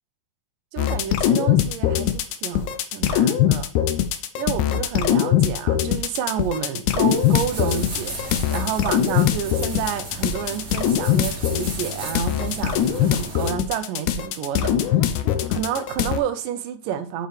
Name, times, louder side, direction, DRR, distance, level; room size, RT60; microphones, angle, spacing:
voice 1, 0.7-3.7 4.4-8.2 8.5-15.1 15.5-17.3, right 9 dB, 85° right, 2.3 m, -29 dB
sound 1, 0.8-16.2, left 11 dB, 75° left, 2.0 m, -21 dB
sound 2, 6.9-13.5, right 1 dB, 30° right, 2.9 m, -35 dB
7.8 x 6.7 x 3.2 m
omnidirectional pair, 3.9 m